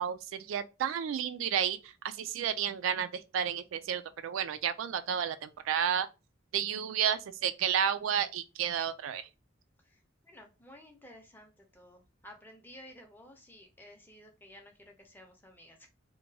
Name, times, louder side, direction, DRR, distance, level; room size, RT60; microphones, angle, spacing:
voice 1, 0.0-6.1 6.5-9.3, right 8 dB, 90° right, 0.3 m, -31 dB
voice 2, 9.8-15.9, left 1 dB, 10° left, 0.5 m, -54 dB
2.8 x 2.2 x 2.7 m
head